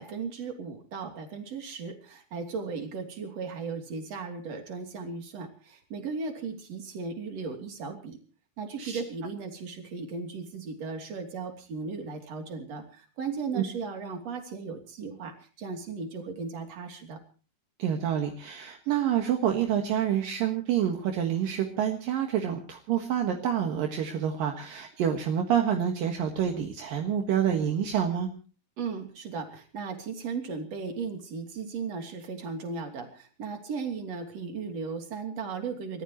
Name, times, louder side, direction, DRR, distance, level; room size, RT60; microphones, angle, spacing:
voice 1, 0.0-8.2 8.6-17.2 28.8-36.0, right 5 dB, 45° right, 4 dB, 3.9 m, -36 dB
voice 2, 17.8-28.3, right 9 dB, 70° right, 3 dB, 3.2 m, -27 dB
30.0 x 14.5 x 3.1 m, 0.38 s
omnidirectional pair, 4.3 m